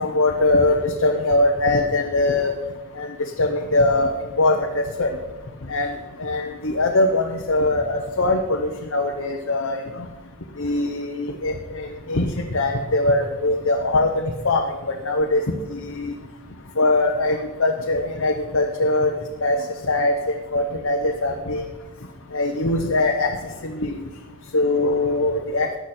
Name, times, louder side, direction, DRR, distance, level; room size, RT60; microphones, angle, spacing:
voice 1, 0.0-2.5 3.0-4.1 4.4-5.1 5.7-10.0 10.6-15.4 15.7-16.1 16.8-19.1 19.4-19.6 19.9-21.6 22.3-23.3 23.6-23.9 24.5-25.7, left 2 dB, 65° left, 3 dB, 1.0 m, -22 dB
16.5 x 10.5 x 4.4 m, 1.2 s
head